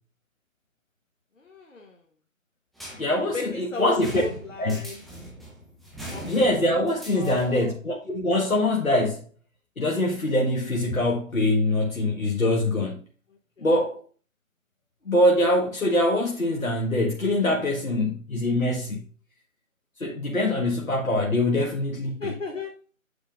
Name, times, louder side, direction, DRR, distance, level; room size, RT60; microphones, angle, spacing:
voice 1, 1.4-2.0 3.0-5.0 6.1-6.2 7.1-7.7 13.6-13.7 22.2-22.7, left 3 dB, 65° left, 1.2 m, -35 dB
sound 1, 2.8-7.7, right 1 dB, ahead, 0.6 m, -41 dB
voice 2, 3.0-4.2 4.6-4.8 6.2-9.3 9.8-13.1 13.6-14.0 15.1-19.0 20.0-22.3, left 1 dB, 80° left, 1.5 m, -24 dB
8.5 x 5.3 x 2.5 m
figure-of-eight pair, 165°, 41 cm